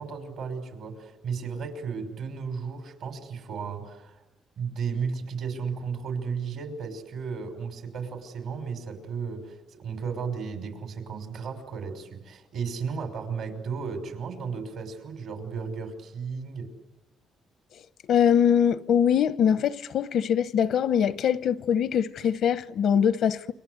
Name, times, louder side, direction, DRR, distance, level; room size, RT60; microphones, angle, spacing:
voice 1, 0.0-4.2 4.6-16.7, right 5 dB, 80° right, 5.5 m, -34 dB
voice 2, 18.1-23.5, left 8 dB, 75° left, 0.8 m, -23 dB
29.0 x 24.5 x 8.1 m
cardioid pair, 90°, 0 cm